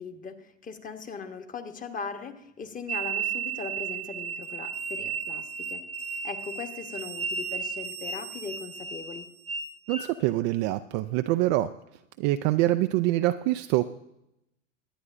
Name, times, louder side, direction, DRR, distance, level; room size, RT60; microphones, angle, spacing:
voice 1, 0.0-9.3, left 5 dB, 20° left, 7 dB, 1.2 m, -39 dB
sound 1, 2.9-10.1, right 6 dB, 15° right, 1.0 m, -34 dB
voice 2, 9.9-11.7 12.2-13.8, right 16 dB, 35° right, 9 dB, 0.4 m, -25 dB
23.0 x 9.7 x 2.6 m, 0.85 s
hypercardioid pair, 95°, 39 cm